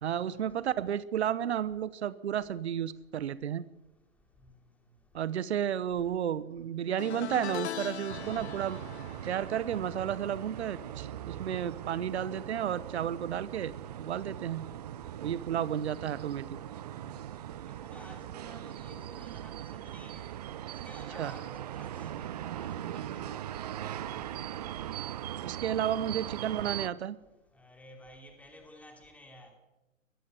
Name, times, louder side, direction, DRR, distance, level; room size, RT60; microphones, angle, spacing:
voice 1, 0.0-3.6 5.1-8.8 9.2-14.6 15.2-16.4 21.2-21.3 25.4-27.2, right 9 dB, 55° right, 1.0 m, -32 dB
sound 1, 7.0-12.4 12.6-13.0 14.2-14.3, left 10 dB, 55° left, 1.3 m, -42 dB
sound 2, 8.1-26.9, right 11 dB, 30° right, 0.6 m, -40 dB
voice 2, 16.9-17.2 17.7-20.3 20.7-24.6 27.5-29.5, left 1 dB, 5° left, 2.9 m, -53 dB
22.5 x 14.0 x 8.0 m
figure-of-eight pair, 130°, 40 cm